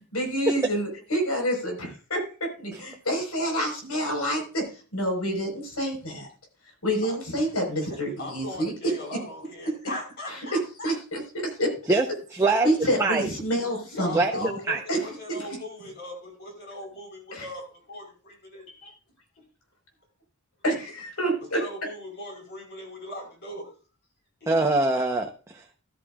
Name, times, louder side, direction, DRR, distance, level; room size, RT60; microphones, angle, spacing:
voice 1, 0.1-4.7 4.9-6.3 6.8-8.7 10.8-11.2 11.6-11.7 12.6-14.5 14.9-15.0 15.3-15.4 17.3-17.4 18.8-18.9 20.6-21.6, equal, 85° left, 3 dB, 4.7 m, -28 dB
voice 2, 7.0-7.5 7.8-10.9 13.9-18.7 21.5-23.7 24.4-24.6, left 1 dB, 50° left, 0 dB, 4.8 m, -39 dB
voice 3, 12.3-12.7 13.0-13.3 14.1-14.3 14.7-14.8 24.5-25.3, right 3 dB, 15° right, 0 dB, 0.8 m, -22 dB
13.5 x 13.0 x 2.4 m, 0.35 s
head